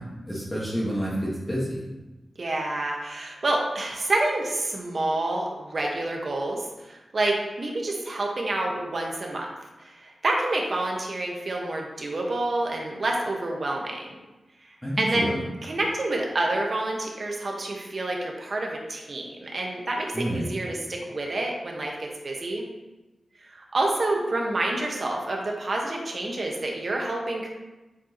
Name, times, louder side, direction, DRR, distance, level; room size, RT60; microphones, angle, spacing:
voice 1, 0.0-1.8 14.8-15.4 20.1-20.5, equal, 15° left, -7 dB, 1.6 m, -29 dB
voice 2, 2.4-9.5 9.8-14.2 15.0-15.3 15.6-22.7 23.5-27.5, right 2 dB, 55° right, 0 dB, 1.4 m, -28 dB
7.9 x 4.6 x 3.0 m, 1.1 s
cardioid pair, 70°, 0 cm